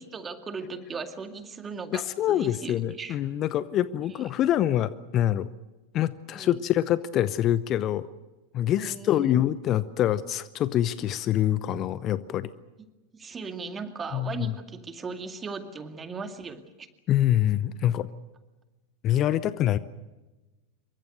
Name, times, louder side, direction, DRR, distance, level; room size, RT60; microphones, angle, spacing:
voice 1, 0.0-3.2 4.1-4.2 6.3-6.6 8.7-9.4 13.1-16.9, right 4 dB, 20° right, 7 dB, 2.3 m, -38 dB
voice 2, 1.9-5.5 5.9-8.1 8.5-12.5 14.1-14.5 17.1-18.1 19.0-19.8, left 12 dB, 35° left, 16 dB, 0.8 m, -25 dB
27.5 x 24.0 x 6.6 m, 1.1 s
figure-of-eight pair, 90°, 0 cm